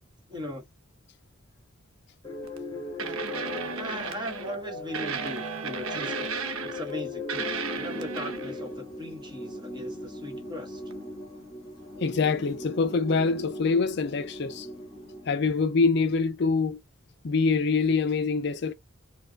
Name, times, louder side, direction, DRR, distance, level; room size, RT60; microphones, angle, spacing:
voice 1, 0.3-0.6 3.8-6.3 6.6-10.8, left 1 dB, 20° right, 1.3 m, -38 dB
sound 1, 2.2-16.0, left 2 dB, 20° left, 1.5 m, -39 dB
sound 2, 2.4-2.6 3.0-4.6 4.9-7.0 7.3-8.6 10.9-11.0, right 5 dB, 85° right, 0.7 m, -34 dB
voice 2, 12.0-14.7 15.3-16.8 17.2-18.7, left 4 dB, 50° left, 0.4 m, -25 dB
4.4 x 2.3 x 2.3 m
head